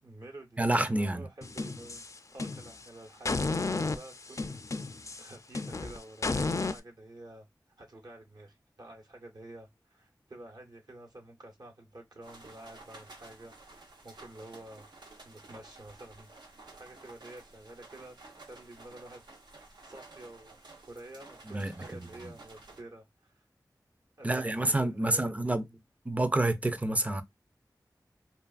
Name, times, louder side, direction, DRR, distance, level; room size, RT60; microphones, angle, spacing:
voice 1, 0.0-2.0 2.3-4.9 5.2-7.5 7.8-14.9 15.2-18.2 18.5-19.2 19.5-20.5 20.9-23.4 24.2-25.8, right 1 dB, 70° right, 1.1 m, -50 dB
voice 2, 0.6-1.3 21.5-22.3 24.2-25.6 26.1-27.2, right 2 dB, 20° right, 0.5 m, -29 dB
sound 1, 1.4-2.8 3.2-6.8, left 3 dB, 45° left, 0.3 m, -33 dB
sound 2, 12.2-22.8, right 3 dB, 90° right, 0.7 m, -53 dB
3.0 x 2.4 x 2.3 m
wide cardioid pair, 55°, 7 cm